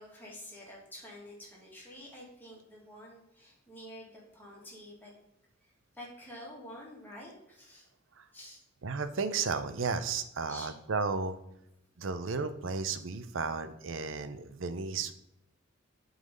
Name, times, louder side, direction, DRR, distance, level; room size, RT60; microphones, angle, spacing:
voice 1, 0.0-5.1 5.6-7.9 8.3-8.6 10.4-10.7, left 1 dB, 10° left, -4 dB, 2.3 m, -49 dB
voice 2, 8.8-11.4 12.0-15.1, right 4 dB, 70° right, 11 dB, 0.6 m, -33 dB
7.9 x 4.0 x 5.4 m, 0.82 s
head